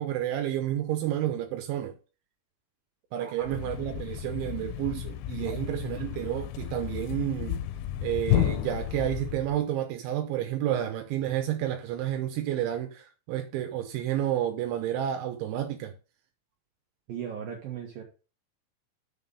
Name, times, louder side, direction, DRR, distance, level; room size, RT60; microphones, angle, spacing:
voice 1, 0.0-1.9 3.1-7.6 8.0-15.9, right 12 dB, 80° right, 3.3 m, -30 dB
Thump thud, 3.4-9.6, left 12 dB, 85° left, 2.9 m, -32 dB
voice 2, 17.1-18.0, right 8 dB, 65° right, 2.6 m, -38 dB
6.7 x 5.8 x 7.0 m
omnidirectional pair, 5.3 m